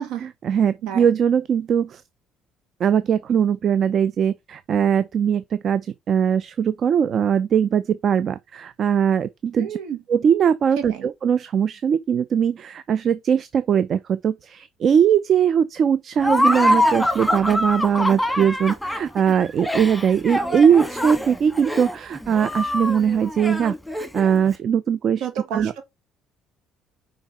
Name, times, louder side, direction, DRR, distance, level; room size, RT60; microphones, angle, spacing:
voice 1, 0.2-2.0 2.8-9.8 10.1-25.3 25.5-25.7, right 8 dB, 50° right, 0.5 m, -20 dB
voice 2, 0.8-1.2 9.6-10.0 10.8-11.1 25.2-25.8, right 8 dB, 85° right, 1.4 m, -30 dB
Laughter, 16.2-24.5, left 1 dB, 5° left, 1.6 m, -24 dB
5.1 x 5.1 x 4.2 m
supercardioid pair, 90°, 0 cm